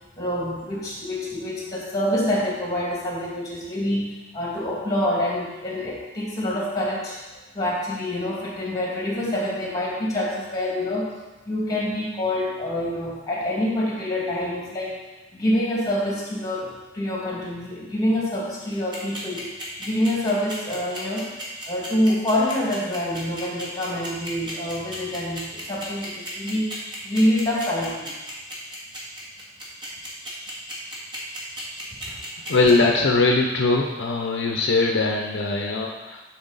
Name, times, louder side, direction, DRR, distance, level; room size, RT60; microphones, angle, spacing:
voice 1, 0.2-7.2 7.5-11.1 11.5-15.0 15.3-19.5 19.8-21.3 21.7-26.7 27.0-28.1, left 1 dB, 20° left, -5 dB, 2.2 m, -26 dB
sound 1, 18.7-32.7, equal, 25° right, 1.9 m, -35 dB
voice 2, 32.5-36.2, left 3 dB, 65° left, 1 dB, 0.6 m, -21 dB
10.0 x 4.4 x 4.0 m, 1.2 s
head